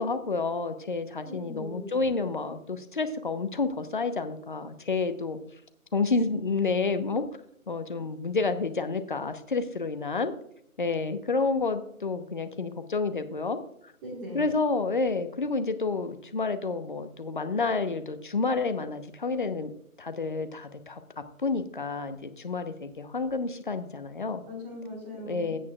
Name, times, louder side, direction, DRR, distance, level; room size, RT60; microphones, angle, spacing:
voice 1, 0.0-5.4 5.9-7.3 7.7-10.3 10.8-13.6 14.3-19.7 20.0-21.0 21.4-24.4 25.2-25.6, left 4 dB, 35° left, 9 dB, 0.9 m, -29 dB
voice 2, 1.2-2.1 14.0-14.5 24.5-25.6, left 1 dB, 5° right, -2 dB, 1.3 m, -40 dB
16.5 x 8.4 x 2.3 m, 0.70 s
figure-of-eight pair, 155°, 43 cm